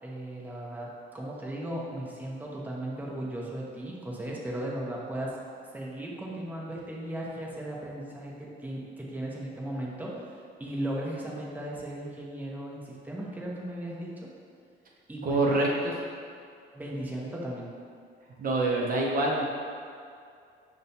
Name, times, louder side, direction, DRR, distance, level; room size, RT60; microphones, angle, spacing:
voice 1, 0.0-5.4 5.7-10.2 10.6-14.3 15.1-15.6 16.7-17.7, right 1 dB, 10° right, -4 dB, 0.6 m, -36 dB
voice 2, 15.2-15.9 18.4-19.4, right 2 dB, 45° right, -2 dB, 0.5 m, -25 dB
5.4 x 2.2 x 2.7 m, 2.3 s
cardioid pair, 90°, 20 cm